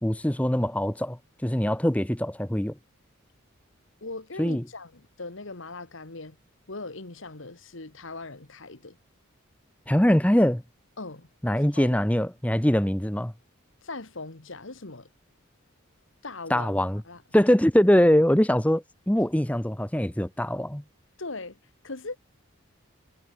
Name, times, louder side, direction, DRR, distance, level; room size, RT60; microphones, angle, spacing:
voice 1, 0.0-2.7 4.4-4.6 9.9-10.6 11.4-13.3 16.5-17.0 17.3-20.8, equal, 5° left, 0.8 m, -23 dB
voice 2, 4.0-6.4 6.7-9.0 11.0-11.3 11.7-12.0 13.8-15.1 16.2-16.8 17.0-17.2 21.2-21.6 21.8-22.2, left 3 dB, 65° left, 1.7 m, -39 dB
head